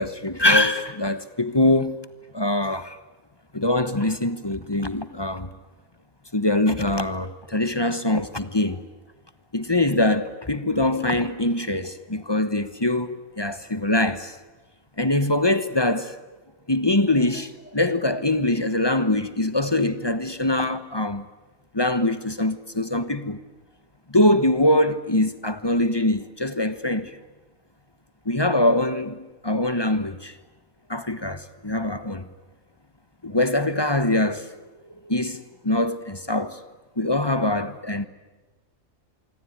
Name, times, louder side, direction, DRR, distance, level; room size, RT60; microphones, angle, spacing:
voice 1, 0.0-2.0 2.3-3.0 3.5-5.5 6.3-8.8 9.5-14.4 15.0-16.2 16.7-21.2 21.7-23.4 24.1-27.2 28.2-30.3 30.9-32.3 33.2-34.5 35.0-36.6 37.0-38.0, left 1 dB, 20° left, 1.0 m, -23 dB
25.5 x 24.5 x 9.5 m
omnidirectional pair, 1.4 m